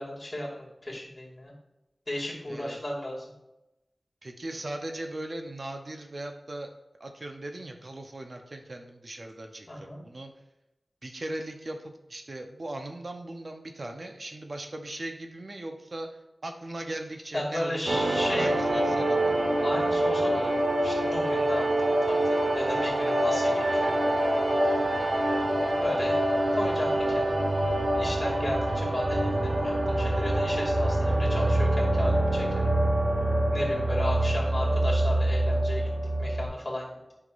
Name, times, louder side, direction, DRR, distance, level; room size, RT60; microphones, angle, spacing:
voice 1, 0.0-1.5 2.1-3.3 9.7-10.0 17.3-18.8 19.6-22.2 22.5-23.9 25.8-26.1 26.5-27.4 28.0-32.7 33.5-35.9 36.2-37.1, left 1 dB, 35° left, -3 dB, 2.4 m, -35 dB
voice 2, 4.2-6.7 7.0-10.3 11.0-16.1 16.4-19.3, right 1 dB, 55° right, 4 dB, 0.7 m, -38 dB
sound 1, 17.9-36.5, right 1 dB, 75° right, 1.2 m, -25 dB
9.3 x 5.8 x 2.5 m, 0.93 s
wide cardioid pair, 80°, 0 cm